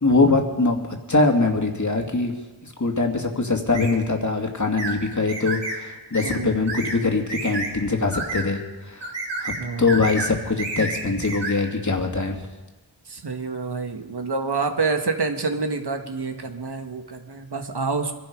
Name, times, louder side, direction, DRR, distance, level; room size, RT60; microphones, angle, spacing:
voice 1, 0.0-2.3 2.6-8.6 8.9-9.1 9.4-12.4, left 3 dB, 45° left, 3 dB, 2.3 m, -22 dB
sound 1, 3.7-3.9 4.8-5.0 5.3-5.8 6.1-6.4 6.7-7.0 7.3-7.7 8.1-8.5 9.0-9.6 9.9-10.3 10.6-11.5, right 3 dB, 85° right, 3.0 m, -30 dB
voice 2, 6.2-6.6 9.6-9.9 13.1-18.1, right 4 dB, 70° right, 5 dB, 1.7 m, -27 dB
24.0 x 11.5 x 5.2 m, 1.2 s
wide cardioid pair, 50°, 42 cm